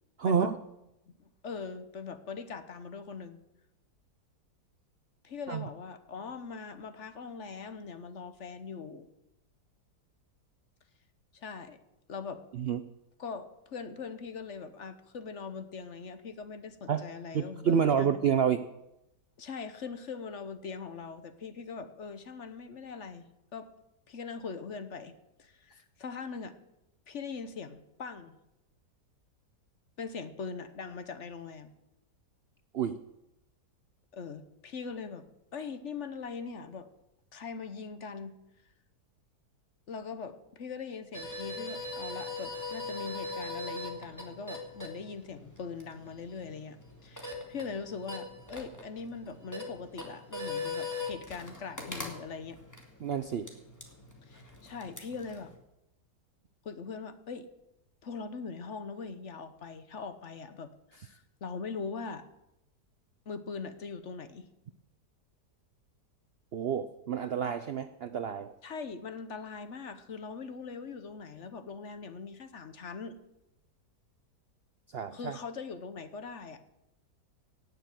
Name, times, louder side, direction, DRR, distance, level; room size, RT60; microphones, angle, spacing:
voice 1, 0.2-0.6 5.5-5.6 12.5-12.8 16.9-17.0 17.3-18.6 32.7-33.0 53.0-53.5 66.5-68.5 74.9-75.4, right 7 dB, 85° right, 11 dB, 0.5 m, -29 dB
voice 2, 1.1-3.4 5.2-9.1 11.3-11.8 12.1-12.4 13.2-18.2 19.4-23.7 24.1-26.6 27.1-28.4 30.0-31.7 34.1-35.2 35.5-36.9 37.3-38.4 39.9-52.6 54.2-55.5 56.6-57.5 58.0-62.2 63.3-64.5 68.6-73.2 75.1-76.6, left 5 dB, 50° left, 11 dB, 1.1 m, -41 dB
sound 1, 41.1-55.5, left 3 dB, 10° left, 2.3 m, -41 dB
17.5 x 6.6 x 9.1 m, 0.90 s
omnidirectional pair, 1.8 m